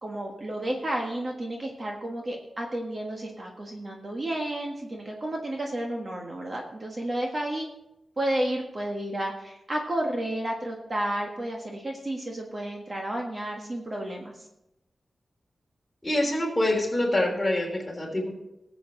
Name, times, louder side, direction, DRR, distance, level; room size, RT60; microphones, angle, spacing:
voice 1, 0.0-7.7 8.2-14.5, right 1 dB, 35° right, 0 dB, 1.5 m, -31 dB
voice 2, 16.0-18.3, left 1 dB, 15° left, -1 dB, 3.3 m, -25 dB
19.5 x 7.9 x 3.9 m, 0.89 s
wide cardioid pair, 140°, 0 cm